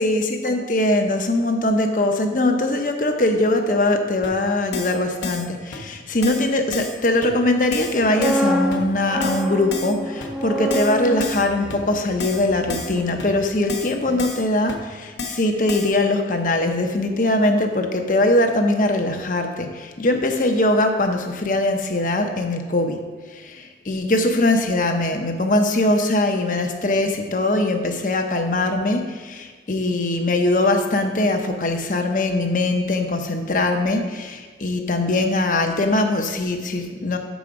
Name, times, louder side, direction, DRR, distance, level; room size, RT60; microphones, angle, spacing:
voice 1, 0.0-23.0 23.3-37.2, left 2 dB, 45° left, 4 dB, 0.7 m, -21 dB
Keyboard (musical), 4.2-4.3 4.7-5.0 5.2-5.5 5.7-5.8 6.2-6.5 6.7-7.0 7.2-7.3 7.7-8.0 8.2-8.4 8.7-8.8 9.2-9.4 9.7-9.9 10.2-10.3 10.7-10.9 11.2-11.4 11.7-11.8 12.2-12.4 12.7-12.9 13.2-13.3 13.7-13.9 14.2-14.4 14.7-14.8 15.2-15.4 15.7-15.9, left 4 dB, 85° left, 0.9 m, -31 dB
sound 1, 7.8-13.8 14.1-14.3, right 1 dB, ahead, 0.5 m, -28 dB
6.8 x 5.0 x 5.0 m, 1.5 s
head